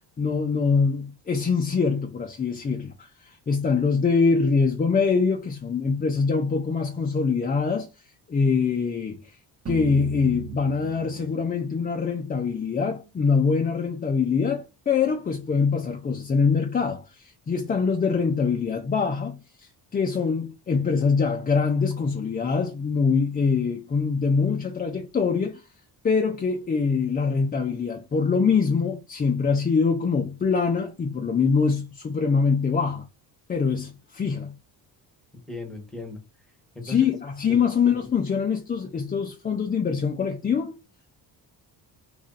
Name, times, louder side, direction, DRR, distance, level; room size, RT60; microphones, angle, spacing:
voice 1, 0.2-7.9 8.3-9.2 9.7-25.6 26.0-33.1 33.5-34.6 36.8-40.7, left 5 dB, 20° left, 0.4 m, -24 dB
sound 1, 9.7-12.9, right 9 dB, 40° right, 0.7 m, -38 dB
voice 2, 35.5-36.2 36.7-37.0 37.5-37.6, left 3 dB, ahead, 1.0 m, -36 dB
3.0 x 2.6 x 3.8 m
cardioid pair, 120°, 41 cm